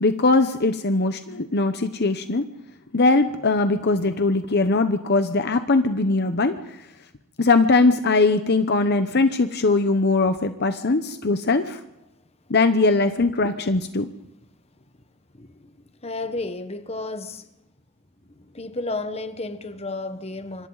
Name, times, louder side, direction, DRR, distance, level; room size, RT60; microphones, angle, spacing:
voice 1, 0.0-2.5 2.9-6.8 7.4-11.8 12.5-14.1, left 3 dB, 50° left, 0.9 m, -20 dB
voice 2, 15.3-15.7 16.0-17.5 18.3-20.7, left 2 dB, 30° left, 1.3 m, -32 dB
26.5 x 25.0 x 4.1 m
head